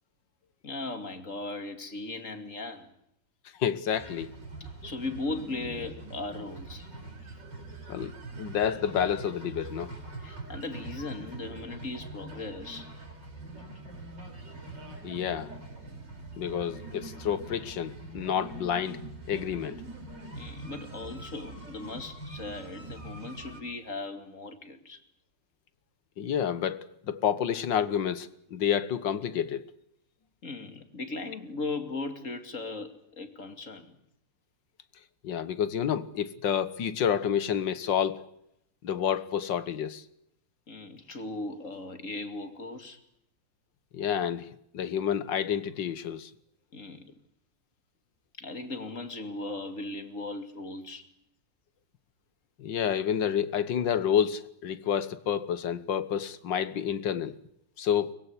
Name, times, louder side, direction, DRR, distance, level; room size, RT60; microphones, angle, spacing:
voice 1, 0.6-2.9 4.6-6.9 7.2-7.3 10.2-12.9 20.4-25.0 30.4-34.0 40.7-43.0 46.7-47.1 48.4-51.1, left 3 dB, 45° left, 3.0 m, -38 dB
voice 2, 3.6-4.3 7.9-9.9 15.0-15.5 16.4-19.0 19.3-19.8 26.2-29.7 35.2-38.2 38.8-40.0 43.9-44.5 44.7-46.3 52.6-57.3 57.8-58.1, left 8 dB, 85° left, 2.0 m, -29 dB
sound 1, 3.9-23.6, right 2 dB, 70° right, 6.7 m, -43 dB
23.5 x 21.5 x 9.9 m
omnidirectional pair, 1.9 m